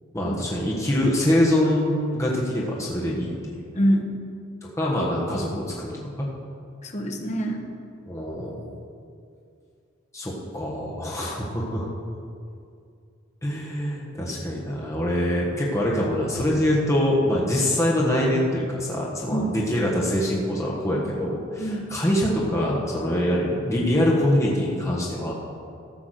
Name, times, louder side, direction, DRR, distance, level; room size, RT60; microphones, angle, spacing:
voice 1, 0.1-3.3 4.8-6.3 8.1-8.5 10.1-11.9 13.4-25.3, left 1 dB, 15° left, -4 dB, 1.3 m, -24 dB
voice 2, 3.7-4.2 6.8-7.7 19.3-19.6 21.6-21.9, equal, 35° left, 3 dB, 1.2 m, -25 dB
14.0 x 6.1 x 6.4 m, 2.4 s
head